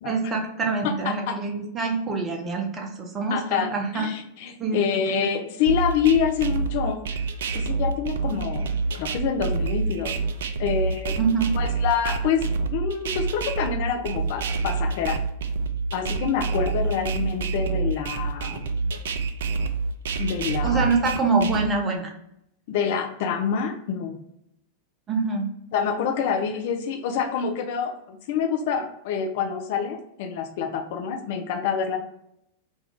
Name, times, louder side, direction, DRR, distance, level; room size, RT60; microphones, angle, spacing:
voice 1, 0.0-4.1 4.6-5.2 11.2-11.5 20.6-22.1 25.1-25.5, right 4 dB, 25° right, 1 dB, 0.6 m, -25 dB
voice 2, 0.8-1.4 3.3-7.2 7.5-8.7 9.0-10.2 10.6-11.2 11.5-15.2 15.9-18.6 20.2-20.9 22.7-24.2 25.7-32.0, left 7 dB, 50° left, 4 dB, 0.4 m, -27 dB
sound 1, 5.7-21.7, right 4 dB, 60° right, 0.3 m, -27 dB
2.6 x 2.3 x 3.4 m, 0.78 s
figure-of-eight pair, 90°, 0 cm